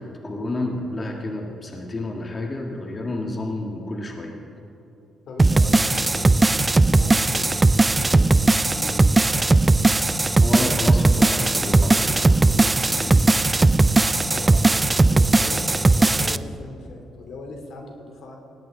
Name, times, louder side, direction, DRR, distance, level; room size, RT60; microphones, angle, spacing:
voice 1, 0.0-4.4 10.3-13.3, left 2 dB, 30° left, 1 dB, 1.7 m, -30 dB
voice 2, 5.3-7.5 7.9-8.3 8.6-10.3 14.3-18.4, left 2 dB, 70° left, 2 dB, 2.6 m, -40 dB
sound 1, 5.4-16.4, right 2 dB, 20° right, 0.4 m, -18 dB
18.5 x 18.0 x 3.8 m, 2.9 s
cardioid pair, 90°, 0 cm